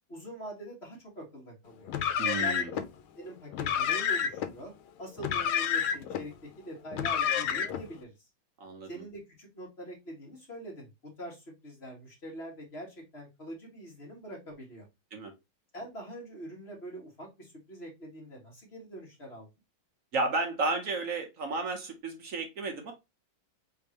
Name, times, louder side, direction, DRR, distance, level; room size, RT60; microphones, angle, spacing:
voice 1, 0.1-1.9 2.4-2.8 3.2-4.7 5.0-8.1 8.8-14.9 15.7-19.5, right 1 dB, 30° left, -2 dB, 1.9 m, -44 dB
Car, 1.9-2.9 3.5-4.5 5.2-6.2 6.9-7.9, left 8 dB, 80° left, 1.5 m, -29 dB
voice 2, 2.2-2.7 8.6-8.9 15.1-15.3 20.1-22.9, right 3 dB, 50° right, 3 dB, 1.0 m, -32 dB
3.9 x 3.5 x 2.9 m, 0.22 s
omnidirectional pair, 2.3 m